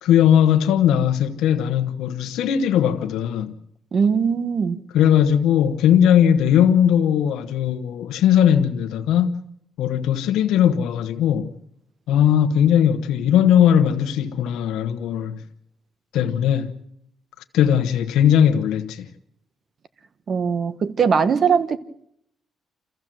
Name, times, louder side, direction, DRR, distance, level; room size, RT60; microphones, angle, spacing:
voice 1, 0.0-3.6 4.9-9.4 9.8-11.5 12.1-15.4 16.1-16.7 17.5-19.1, left 9 dB, 85° left, 1.1 m, -18 dB
voice 2, 3.9-4.8 20.3-21.8, right 6 dB, 50° right, 1.3 m, -20 dB
28.0 x 15.0 x 7.7 m
cardioid pair, 90°, 0 cm